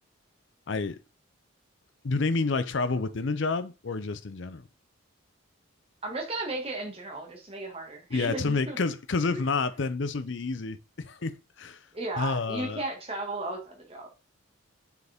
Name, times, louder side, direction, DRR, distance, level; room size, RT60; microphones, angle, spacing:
voice 1, 0.7-1.0 2.0-4.6 8.1-11.8 12.2-12.8, left 3 dB, 60° left, 0.6 m, -29 dB
voice 2, 6.0-8.8 9.3-9.4 11.9-14.1, right 2 dB, 30° right, 1.8 m, -35 dB
6.5 x 4.8 x 3.5 m
head